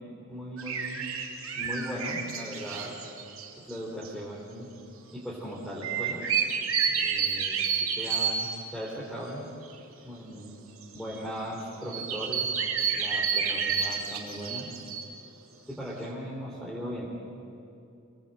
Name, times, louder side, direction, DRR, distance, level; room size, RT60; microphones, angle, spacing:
voice 1, 0.3-1.1 1.6-2.9 3.6-4.7 5.1-6.3 6.9-9.5 10.0-10.5 10.9-12.5 12.9-14.7 15.7-17.1, equal, ahead, -6 dB, 3.6 m, -38 dB
sound 1, 0.6-3.8 4.0-4.1 5.8-8.6 9.7-9.8 10.8-11.2 11.9-15.0, right 6 dB, 80° right, 2.6 m, -29 dB
26.0 x 19.5 x 7.9 m, 2.7 s
head